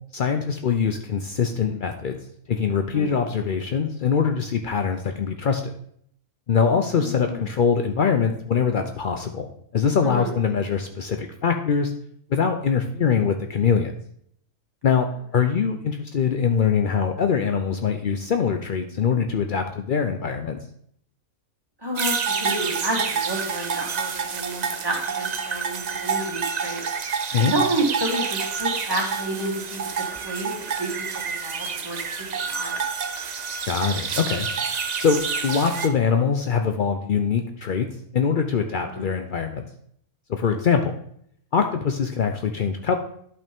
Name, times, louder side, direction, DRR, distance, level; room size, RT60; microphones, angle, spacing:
voice 1, 0.1-2.2 2.5-5.7 6.5-11.9 12.3-13.9 14.8-15.1 15.3-20.6 27.3-27.5 33.7-34.5 35.0-37.9 38.1-39.6 40.3-41.0 41.5-43.0, left 6 dB, 85° left, 6 dB, 0.4 m, -23 dB
voice 2, 7.0-7.4 10.0-10.3 21.8-26.8 27.5-29.8 30.2-30.5 30.8-32.0 32.5-32.8 38.9-39.1, right 1 dB, 15° right, -1 dB, 1.8 m, -30 dB
sound 1, 22.0-35.9, right 6 dB, 70° right, 0.4 m, -28 dB
11.0 x 5.7 x 3.5 m, 0.67 s
omnidirectional pair, 1.6 m